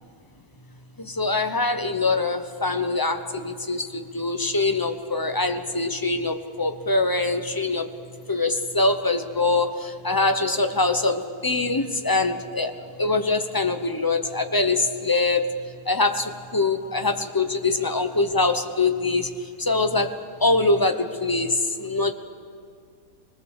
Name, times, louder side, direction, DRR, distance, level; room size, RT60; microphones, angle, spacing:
voice 1, 1.0-7.9 8.3-15.5 15.8-22.1, left 3 dB, 20° left, 7 dB, 0.8 m, -24 dB
25.0 x 20.5 x 7.4 m, 2.2 s
omnidirectional pair, 1.6 m